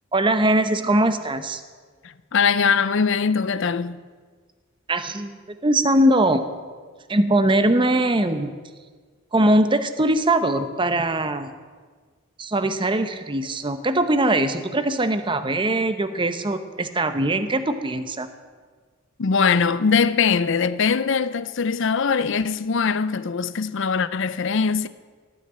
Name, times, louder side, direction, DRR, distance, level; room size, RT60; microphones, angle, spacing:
voice 1, 0.1-1.6 4.9-6.5 7.1-8.6 9.3-11.5 12.4-18.3, right 1 dB, 25° right, 0.8 m, -21 dB
voice 2, 2.3-4.0 19.2-24.9, left 5 dB, 60° left, 0.5 m, -21 dB
17.5 x 6.5 x 8.8 m
head